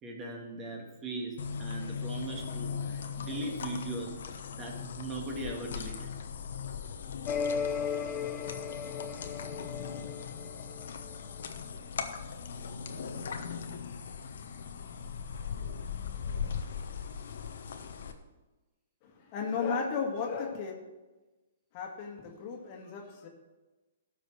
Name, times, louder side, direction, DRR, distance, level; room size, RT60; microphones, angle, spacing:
voice 1, 0.0-4.1 4.5-6.1, right 2 dB, 25° right, 1 dB, 2.0 m, -39 dB
sound 1, 1.4-18.1, left 6 dB, 70° left, 1.1 m, -39 dB
sound 2, 7.3-11.1, left 6 dB, 25° left, 0.8 m, -35 dB
voice 2, 19.0-20.7 21.7-23.3, left 5 dB, 40° left, 2 dB, 1.8 m, -34 dB
13.0 x 5.0 x 6.3 m, 1.2 s
hypercardioid pair, 130°, 0 cm